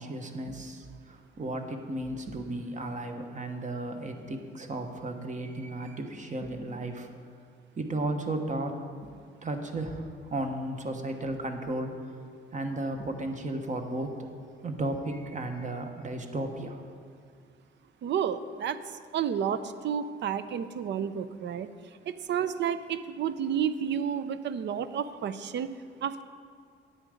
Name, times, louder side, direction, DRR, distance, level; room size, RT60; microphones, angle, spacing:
voice 1, 0.0-7.1 7.8-8.8 9.4-11.9 12.5-14.2 14.6-16.8, right 2 dB, 40° right, 5 dB, 1.1 m, -34 dB
voice 2, 18.0-18.8 19.1-19.6 19.8-21.7 22.1-25.7 26.0-26.2, right 8 dB, 65° right, 13 dB, 0.6 m, -30 dB
10.0 x 7.9 x 5.1 m, 2.1 s
cardioid pair, 90°, 20 cm